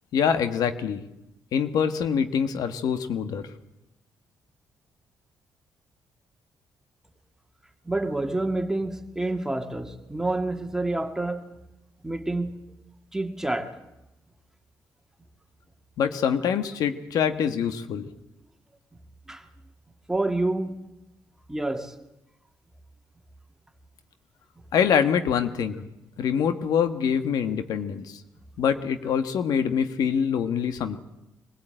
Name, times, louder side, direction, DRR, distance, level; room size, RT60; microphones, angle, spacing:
voice 1, 0.1-1.0 1.5-3.5 16.0-18.1 24.7-25.9 26.2-28.2 28.6-31.0, left 7 dB, 75° left, 1.5 m, -25 dB
voice 2, 7.9-11.6 12.0-12.5 13.1-13.8 19.3-19.5 20.1-20.8 21.5-22.0, right 2 dB, 10° right, 2.1 m, -28 dB
23.5 x 15.5 x 9.1 m
cardioid pair, 100°, 6 cm